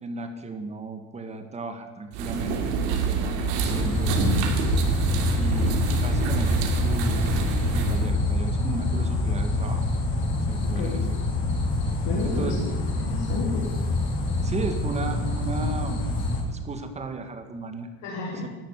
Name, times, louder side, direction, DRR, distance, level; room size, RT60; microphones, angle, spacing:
voice 1, 0.0-4.6 5.3-7.3 7.6-9.9 10.5-11.0 12.2-12.8 14.4-16.0 16.5-17.9 18.4-18.5, right 3 dB, 20° right, 7 dB, 1.8 m, -35 dB
sound 1, 2.1-8.1, right 5 dB, 80° right, 2.8 m, -26 dB
sound 2, 3.6-16.4, left 2 dB, 35° left, 3.8 m, -26 dB
voice 2, 10.6-11.0 12.0-12.6 13.0-13.6 18.0-18.5, left 2 dB, 55° left, -3 dB, 3.5 m, -31 dB
12.5 x 11.0 x 9.8 m, 1.4 s
supercardioid pair, 140°, 33 cm